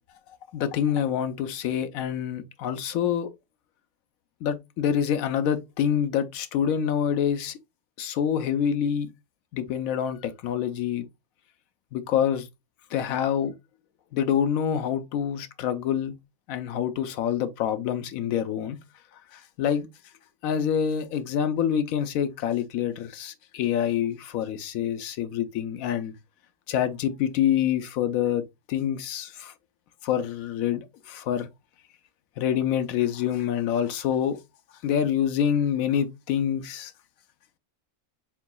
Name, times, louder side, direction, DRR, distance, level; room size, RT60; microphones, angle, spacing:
voice 1, 0.5-3.3 4.4-7.6 8.0-9.1 9.5-11.1 11.9-12.4 12.9-13.5 14.1-16.1 16.5-18.8 19.3-19.9 20.4-26.1 26.7-28.4 28.7-29.5 30.0-31.5 32.4-34.4 34.8-36.9, left 9 dB, 75° left, 1.0 m, -26 dB
4.6 x 3.9 x 2.2 m
omnidirectional pair, 1.5 m